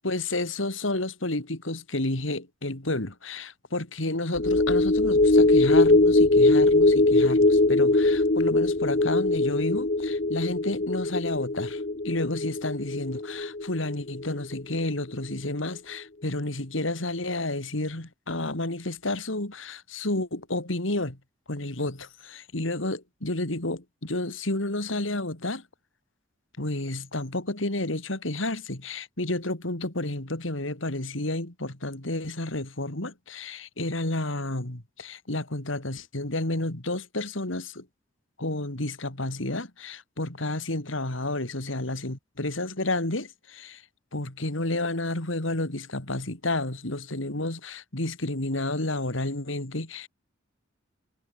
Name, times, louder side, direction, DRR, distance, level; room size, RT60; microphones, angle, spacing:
voice 1, 0.0-21.2 21.5-25.6 26.6-37.9 38.4-43.8 44.1-50.1, left 2 dB, 70° left, 3.2 m, -31 dB
sound 1, 4.4-15.0 15.3-15.5, left 2 dB, 45° left, 1.2 m, -21 dB
head